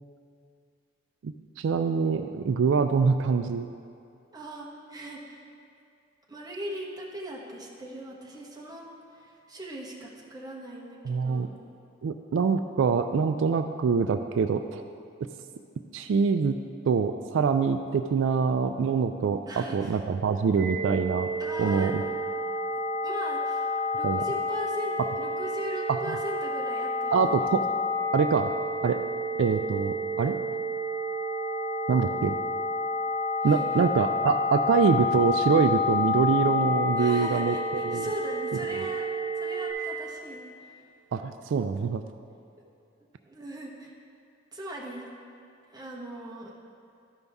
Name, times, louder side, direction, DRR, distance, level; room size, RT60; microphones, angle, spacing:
voice 1, 1.2-3.7 11.1-11.5 12.0-14.8 15.9-16.6 16.9-21.3 21.6-22.0 24.0-24.2 25.9-26.2 27.1-27.7 28.1-28.5 28.8-29.0 29.4-30.4 31.9-32.4 33.4-38.1 41.1-42.0, right 5 dB, 75° right, 7 dB, 0.3 m, -25 dB
voice 2, 4.3-5.5 6.3-11.5 19.5-20.0 21.4-21.9 23.0-27.3 33.4-33.8 36.9-39.1 39.4-40.7 43.2-43.9 44.5-45.1 45.7-46.5, equal, 20° right, -4 dB, 1.1 m, -40 dB
sound 1, 20.6-39.7, left 2 dB, 65° left, 1.8 m, -29 dB
13.0 x 5.4 x 3.5 m, 2.5 s
head